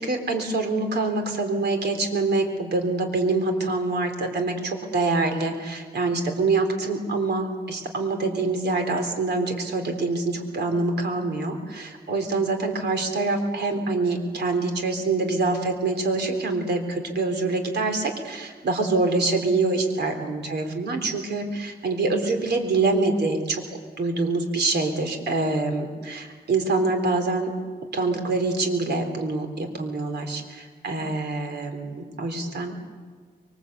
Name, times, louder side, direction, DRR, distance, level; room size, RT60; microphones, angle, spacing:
voice 1, 0.0-23.6 24.0-27.5 27.9-32.8, right 3 dB, 90° right, 5 dB, 3.8 m, -25 dB
25.5 x 23.0 x 8.2 m, 1.5 s
wide cardioid pair, 125°, 17 cm